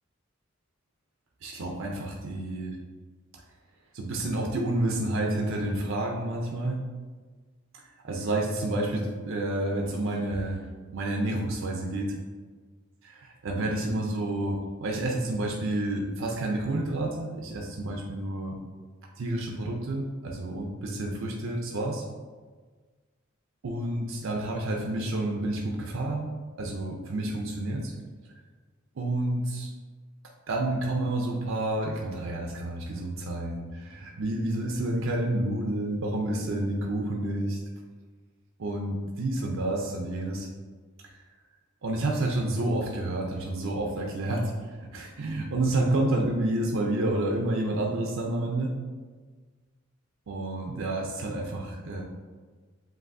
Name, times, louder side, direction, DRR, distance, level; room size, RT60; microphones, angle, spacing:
voice 1, 1.4-2.8 3.9-6.8 8.0-10.6 10.9-12.1 13.4-18.6 19.2-22.0 23.6-26.3 26.6-27.9 29.0-29.7 30.5-37.6 38.6-40.5 41.8-48.7 50.3-52.0, right 1 dB, 65° right, 0 dB, 0.5 m, -29 dB
7.7 x 2.6 x 2.6 m, 1.4 s
head